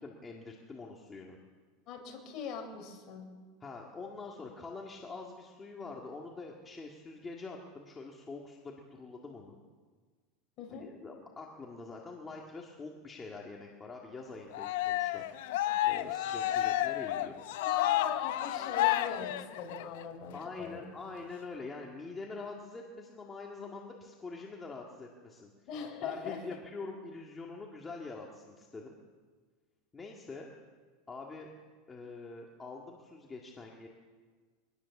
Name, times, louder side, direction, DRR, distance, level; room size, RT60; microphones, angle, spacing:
voice 1, 0.0-1.4 3.6-9.6 10.8-15.2 15.8-17.3 20.3-25.5 26.0-28.9 29.9-30.5 31.1-31.5 31.9-33.9, left 3 dB, 15° left, -1 dB, 2.0 m, -45 dB
voice 2, 1.9-3.3 10.6-10.9 17.6-20.9 25.7-26.6, left 6 dB, 35° left, 2 dB, 5.2 m, -41 dB
Cheering, 14.5-20.0, left 14 dB, 70° left, 0.9 m, -31 dB
23.5 x 19.0 x 7.2 m, 1.5 s
supercardioid pair, 160°, 0 cm